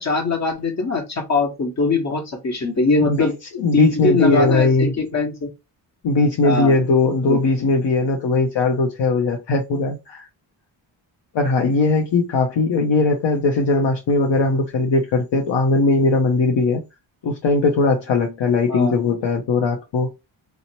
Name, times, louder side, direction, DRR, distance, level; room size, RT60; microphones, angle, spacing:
voice 1, 0.0-3.3 3.7-5.5 6.4-6.8 7.3-7.4 18.7-18.9, left 3 dB, 35° left, 1.1 m, -21 dB
voice 2, 3.6-4.9 6.0-10.3 11.3-16.8 17.2-20.1, left 3 dB, 60° left, 0.7 m, -19 dB
2.8 x 2.1 x 2.8 m
cardioid pair, 70°, 48 cm